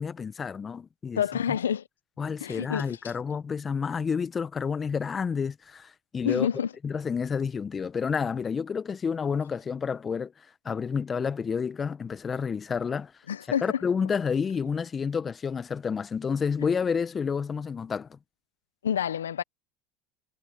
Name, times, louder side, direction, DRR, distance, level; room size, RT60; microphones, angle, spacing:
voice 1, 0.0-1.2 2.2-6.5 6.8-10.3 10.6-13.1 13.6-18.2, left 6 dB, 30° left, 0.9 m, -29 dB
voice 2, 1.1-1.8 2.4-3.0 6.2-6.7 13.3-13.8 18.8-19.4, left 9 dB, 85° left, 1.1 m, -28 dB
hypercardioid pair, 75°, 0 cm